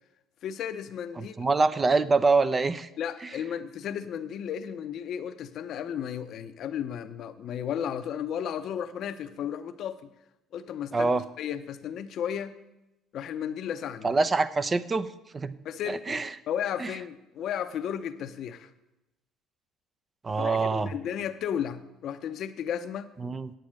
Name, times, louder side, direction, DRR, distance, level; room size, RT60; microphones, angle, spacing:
voice 1, 0.4-1.3 3.0-10.1 10.5-11.1 11.4-12.6 13.1-14.1 15.6-16.2 16.5-18.7 20.4-23.1, left 9 dB, 60° left, 10 dB, 0.7 m, -34 dB
voice 2, 1.2-2.9 3.2-3.3 10.9-11.2 14.0-15.5 15.9-16.3 16.8-16.9 20.2-20.9 23.2-23.5, right 3 dB, 30° right, 13 dB, 0.6 m, -25 dB
9.0 x 8.5 x 6.5 m, 0.94 s
hypercardioid pair, 65°, 0 cm